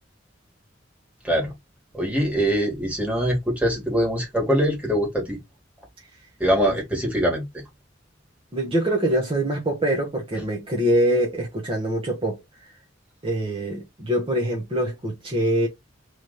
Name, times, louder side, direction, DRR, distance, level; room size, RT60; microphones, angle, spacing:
voice 1, 1.9-5.4 6.4-7.4, equal, 5° right, 1.8 m, -23 dB
voice 2, 8.5-12.7 13.2-15.7, right 1 dB, 30° right, 1.0 m, -24 dB
3.3 x 3.1 x 3.9 m
head